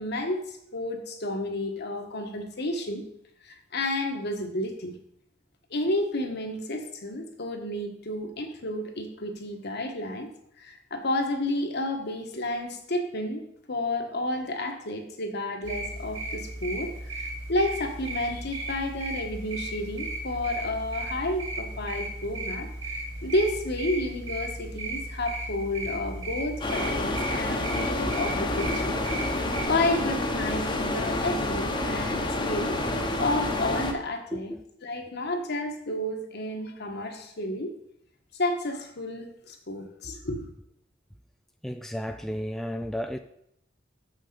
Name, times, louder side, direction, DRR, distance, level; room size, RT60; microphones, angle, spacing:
voice 1, 0.0-3.0 3.4-4.9 5.7-10.3 10.6-29.0 29.4-32.8 33.2-34.5 34.8-37.7 38.3-40.5, left 1 dB, 60° left, 1.4 m, -31 dB
sound 1, 15.6-29.6, right 2 dB, 75° right, 2.7 m, -36 dB
sound 2, 26.6-33.9, left 1 dB, 25° left, 1.0 m, -28 dB
voice 2, 34.3-34.6 41.6-43.2, equal, ahead, 0.3 m, -33 dB
6.4 x 6.3 x 6.8 m
head